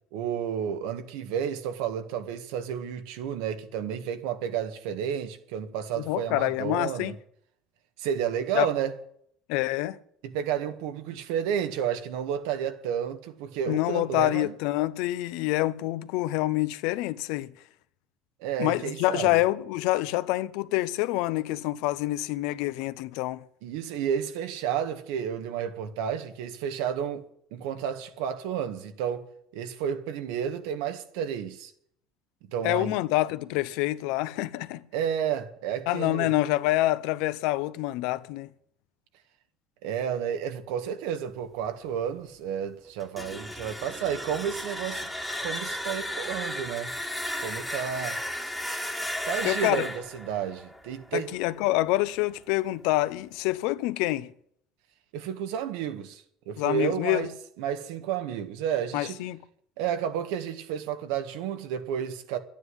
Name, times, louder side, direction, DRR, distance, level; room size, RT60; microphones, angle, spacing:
voice 1, 0.1-7.1 8.0-8.9 10.2-14.5 18.4-19.4 23.6-29.3 29.5-31.7 32.5-32.9 34.9-36.3 39.8-45.1 45.4-46.9 47.4-48.2 49.2-51.3 55.1-57.3 57.6-59.2 59.8-62.4, right 8 dB, 80° right, 1.7 m, -31 dB
voice 2, 6.0-7.1 8.5-8.7 9.5-10.0 13.7-17.5 18.6-23.4 32.6-34.8 35.9-38.5 49.4-49.8 51.1-54.3 56.6-57.3 58.9-59.4, left 17 dB, 75° left, 0.8 m, -27 dB
sound 1, 43.0-51.8, left 1 dB, ahead, 1.5 m, -34 dB
11.5 x 9.5 x 9.8 m
cardioid pair, 140°, 0 cm